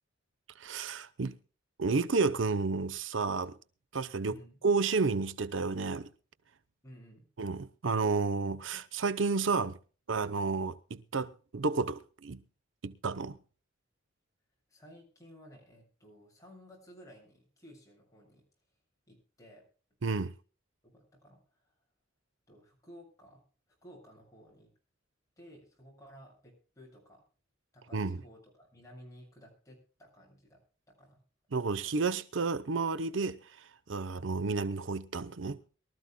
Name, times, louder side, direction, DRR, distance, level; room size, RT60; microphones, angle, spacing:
voice 1, 0.6-1.4 1.8-3.6 3.9-4.3 4.6-6.1 7.4-9.8 10.1-12.4 12.8-13.4 20.0-20.3 27.9-28.2 31.5-35.6, right 4 dB, 70° right, 0.6 m, -31 dB
voice 2, 4.2-4.6 6.8-7.3 14.7-18.4 19.1-19.7 20.8-21.7 22.5-23.4 23.8-24.7 25.4-27.2 27.7-31.2, equal, 15° left, 7.1 m, -55 dB
23.0 x 13.5 x 2.2 m
head